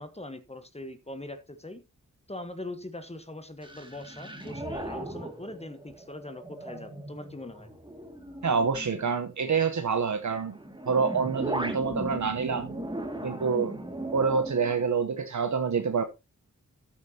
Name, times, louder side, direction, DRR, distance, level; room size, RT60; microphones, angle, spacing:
voice 1, 0.0-1.8 2.3-7.7, left 1 dB, 20° left, 1.3 m, -41 dB
sound 1, 3.6-9.4 10.3-14.9, right 1 dB, 15° right, 2.2 m, -38 dB
voice 2, 8.4-10.6 10.9-12.8 13.2-13.8 14.1-16.0, right 5 dB, 65° right, 1.0 m, -27 dB
13.5 x 8.8 x 2.8 m
wide cardioid pair, 70°, 32 cm